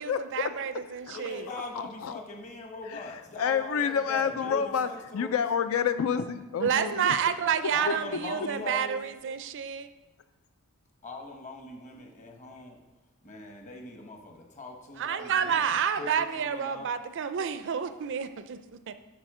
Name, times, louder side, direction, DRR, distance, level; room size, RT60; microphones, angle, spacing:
voice 1, 0.0-1.4 6.6-9.9 15.0-18.6 18.9-19.0, right 7 dB, 60° right, 11 dB, 0.5 m, -29 dB
voice 2, 1.1-5.4 7.7-9.0 11.0-12.8 13.2-15.7 16.0-16.9, left 2 dB, 35° left, 2 dB, 1.2 m, -41 dB
voice 3, 3.4-4.9 5.1-7.2 7.9-8.0, left 7 dB, 70° left, 11 dB, 0.4 m, -28 dB
10.0 x 4.3 x 4.9 m, 1.1 s
head